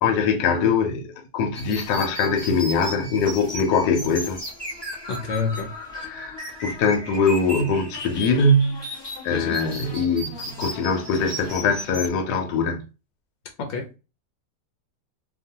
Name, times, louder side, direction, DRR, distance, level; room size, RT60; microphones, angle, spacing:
voice 1, 0.0-4.4 6.0-6.4 6.6-8.9 9.2-12.8, left 4 dB, 90° left, 1.2 m, -22 dB
sound 1, 1.5-12.1, equal, 20° left, 0.7 m, -35 dB
voice 2, 5.1-5.7 9.3-9.6 13.6-14.0, left 5 dB, 65° left, 0.7 m, -28 dB
2.9 x 2.1 x 2.7 m
omnidirectional pair, 1.7 m